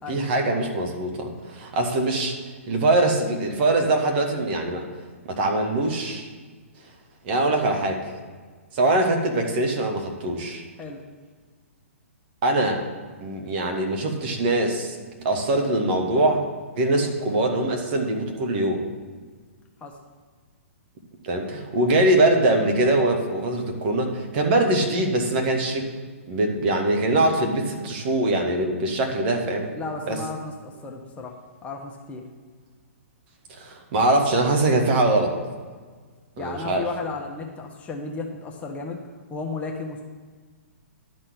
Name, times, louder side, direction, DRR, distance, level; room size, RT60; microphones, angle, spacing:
voice 1, 0.1-2.3 2.7-4.9 5.3-6.3 7.2-8.1 8.7-10.6 12.4-12.9 13.2-15.0 15.2-16.5 16.8-18.8 21.2-25.8 26.3-29.7 30.1-30.2 33.6-35.3 36.4-36.8, right 2 dB, 45° right, 3 dB, 1.7 m, -22 dB
voice 2, 29.8-31.4 31.6-32.2 36.4-39.0 39.3-40.0, left 3 dB, 15° left, 1 dB, 1.0 m, -34 dB
11.5 x 4.3 x 8.1 m, 1.5 s
hypercardioid pair, 125°, 8 cm